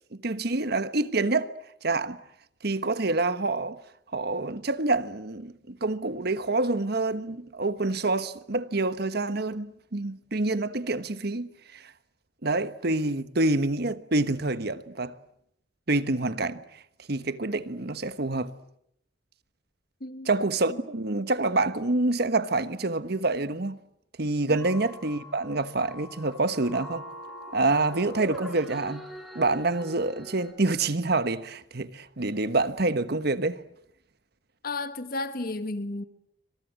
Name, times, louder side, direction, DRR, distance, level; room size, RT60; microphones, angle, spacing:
voice 1, 0.1-1.5 1.8-2.2 2.6-3.8 4.1-11.9 12.4-15.1 15.9-16.8 17.1-18.5 20.3-23.8 24.2-27.0 27.5-29.1 29.3-33.6, right 2 dB, 55° right, 1.3 m, -27 dB
voice 2, 20.0-20.3 20.7-20.8 24.4-24.6 34.6-36.0, left 2 dB, 50° left, 1.7 m, -33 dB
sound 1, 24.5-30.5, equal, ahead, 6.9 m, -42 dB
27.0 x 25.0 x 7.6 m
head